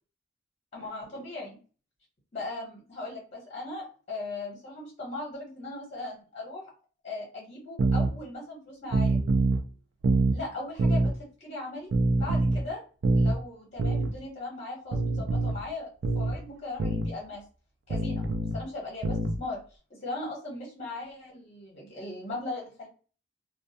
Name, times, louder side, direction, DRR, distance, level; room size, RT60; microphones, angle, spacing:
voice 1, 0.7-1.6 2.3-6.6 7.0-9.2 10.3-11.9 12.2-12.8 13.1-15.9 16.1-17.4 17.9-18.2 18.5-19.6 19.9-22.9, left 2 dB, 35° left, -4 dB, 1.0 m, -38 dB
sound 1, 7.8-8.1 8.9-9.6 10.0-10.4 10.8-11.1 11.9-12.6 13.0-13.4 13.8-14.1 14.9-15.6 16.0-16.4 16.8-17.1 17.9-18.6 19.0-19.4, right 2 dB, 65° right, 0.4 m, -25 dB
2.3 x 2.2 x 2.6 m, 0.37 s
head